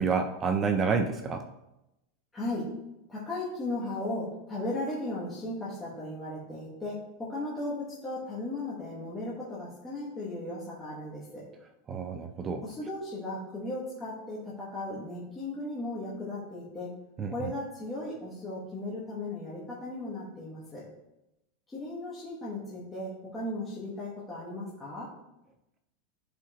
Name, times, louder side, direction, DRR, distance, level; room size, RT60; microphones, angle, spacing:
voice 1, 0.0-1.5 11.9-12.6 17.2-17.5, right 5 dB, 20° right, 7 dB, 0.4 m, -29 dB
voice 2, 2.3-2.7 3.1-11.4 12.6-16.9 17.3-20.8 21.7-25.1, left 2 dB, 10° left, -8 dB, 1.3 m, -36 dB
11.0 x 5.0 x 2.9 m, 0.90 s
supercardioid pair, 175°, 0 cm